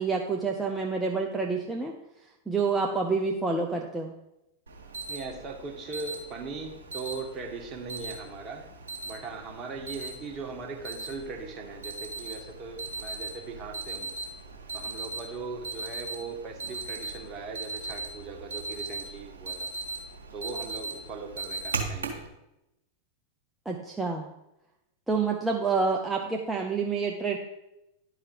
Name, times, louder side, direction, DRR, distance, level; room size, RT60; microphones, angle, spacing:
voice 1, 0.0-1.9 2.5-4.1 23.7-24.3 25.1-27.4, right 4 dB, 5° right, -1 dB, 0.8 m, -28 dB
Alarm, 4.7-22.3, right 3 dB, 70° right, 1.5 m, -38 dB
voice 2, 5.1-8.7 9.1-14.1 14.7-19.7 20.3-22.3, right 4 dB, 30° right, 2 dB, 1.7 m, -39 dB
11.5 x 4.9 x 4.7 m, 0.88 s
figure-of-eight pair, 90°, 0 cm